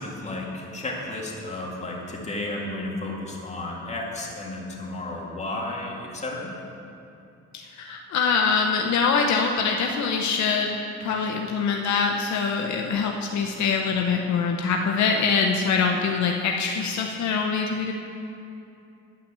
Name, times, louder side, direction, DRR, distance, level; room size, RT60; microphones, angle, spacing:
voice 1, 0.0-6.5, left 2 dB, 20° left, -3 dB, 2.1 m, -33 dB
voice 2, 7.5-17.9, left 5 dB, 70° left, 2 dB, 0.8 m, -24 dB
10.0 x 5.8 x 7.4 m, 2.8 s
cardioid pair, 90°, 30 cm